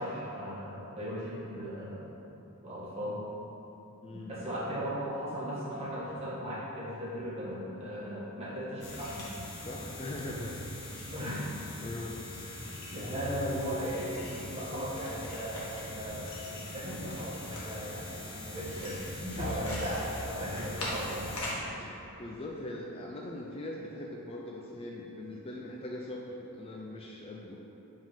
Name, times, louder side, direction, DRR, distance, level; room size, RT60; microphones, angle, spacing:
voice 1, 0.0-2.0 2.6-3.2 4.1-9.3 11.1-11.8 12.9-21.5, equal, 30° right, -8 dB, 1.4 m, -37 dB
voice 2, 4.0-4.3 9.6-10.5 11.8-12.7 19.4-19.7 21.8-27.6, left 1 dB, 25° left, -2 dB, 0.4 m, -41 dB
sound 1, 8.8-21.6, left 1 dB, 80° left, 1.4 m, -45 dB
sound 2, 8.8-21.5, left 1 dB, 65° left, 0.9 m, -42 dB
5.0 x 3.7 x 5.6 m, 2.9 s
head